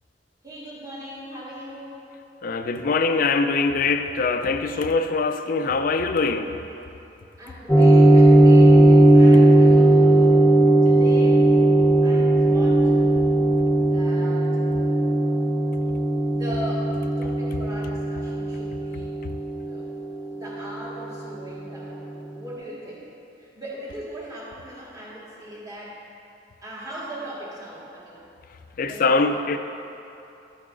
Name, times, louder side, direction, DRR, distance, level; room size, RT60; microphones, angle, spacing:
voice 1, 0.4-2.0 7.4-10.4 10.8-11.4 12.0-12.8 13.9-15.0 16.3-19.1 19.6-19.9 20.3-23.1 23.4-26.0 26.6-28.2 28.9-29.2, equal, 20° right, -7 dB, 1.7 m, -39 dB
voice 2, 2.4-6.6 28.8-29.6, left 4 dB, 55° left, 8 dB, 0.4 m, -23 dB
sound 1, 7.7-20.8, right 1 dB, 5° left, 0.9 m, -17 dB
10.5 x 8.4 x 2.6 m, 2.8 s
head